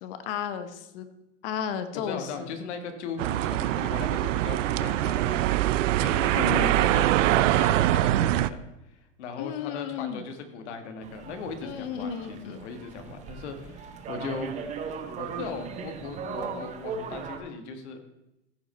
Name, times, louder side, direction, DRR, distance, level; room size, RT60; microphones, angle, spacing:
voice 1, 0.0-1.1 1.4-2.5 6.3-6.8 9.4-10.2 11.6-12.7, left 8 dB, 50° left, 10 dB, 1.0 m, -34 dB
voice 2, 1.9-5.7 6.0-14.5 14.9-18.0, left 5 dB, 65° left, 7 dB, 1.7 m, -38 dB
sound 1, 3.2-8.5, right 14 dB, 85° right, 0.5 m, -23 dB
sound 2, 11.0-17.4, right 5 dB, 20° right, 0.7 m, -38 dB
15.0 x 5.4 x 4.3 m, 0.92 s
supercardioid pair, 155°, 36 cm